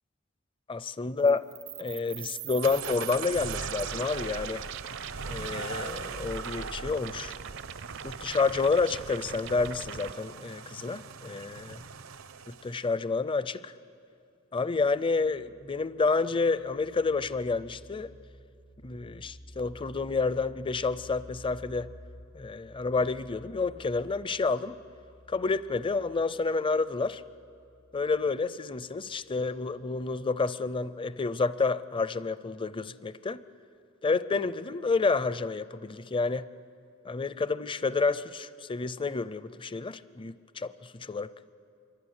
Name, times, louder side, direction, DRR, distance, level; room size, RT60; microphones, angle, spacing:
voice 1, 0.7-1.4 1.8-4.7 5.3-7.3 8.0-11.8 12.5-13.7 14.5-18.1 18.8-21.9 22.3-24.8 25.3-27.2 27.9-33.4 34.0-36.5 37.0-41.5, left 4 dB, 25° left, 16 dB, 0.6 m, -29 dB
sound 1, 1.3-10.1, right 9 dB, 60° right, 0.6 m, -41 dB
sound 2, 2.6-12.9, right 4 dB, 85° right, 0.9 m, -40 dB
sound 3, 14.8-30.2, equal, 85° left, 6.4 m, -53 dB
25.5 x 24.0 x 9.6 m, 2.5 s
head